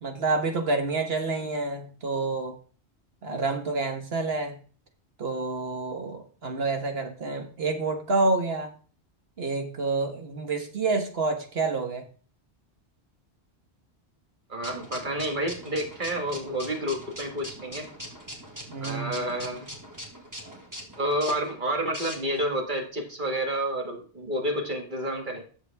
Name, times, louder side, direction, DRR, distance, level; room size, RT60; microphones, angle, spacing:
voice 1, 0.0-2.5 3.2-4.6 5.2-8.7 9.4-12.0 18.7-19.3, right 3 dB, 65° right, 1.6 m, -28 dB
voice 2, 14.5-17.9 18.8-19.7 21.0-25.4, right 1 dB, 45° right, 2.1 m, -29 dB
sound 1, 14.6-22.5, equal, 15° right, 2.0 m, -42 dB
10.5 x 6.9 x 3.5 m
omnidirectional pair, 1.1 m